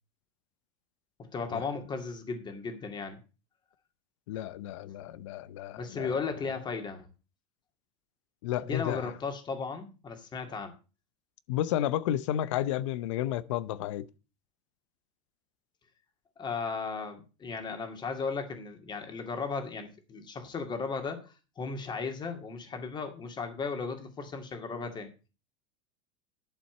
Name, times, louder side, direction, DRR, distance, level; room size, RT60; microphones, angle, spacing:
voice 1, 1.3-3.2 5.8-7.1 8.6-10.7 16.4-25.1, left 4 dB, 30° left, 2.4 m, -36 dB
voice 2, 4.3-6.2 8.4-9.1 11.5-14.1, left 12 dB, 75° left, 0.7 m, -32 dB
11.5 x 4.3 x 7.8 m
supercardioid pair, 105°, 16 cm